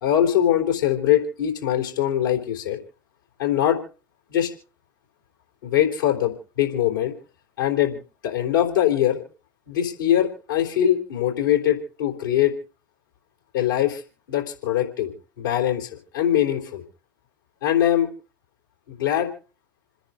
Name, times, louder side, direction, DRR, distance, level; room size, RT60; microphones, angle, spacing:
voice 1, 0.0-2.8 3.4-3.8 4.3-4.5 5.6-7.1 7.6-9.2 9.7-12.5 13.5-14.0 14.3-16.8 17.6-18.1 18.9-19.3, left 11 dB, 75° left, 2 dB, 3.6 m, -22 dB
28.5 x 10.0 x 3.7 m, 0.37 s
figure-of-eight pair, 70°, 11 cm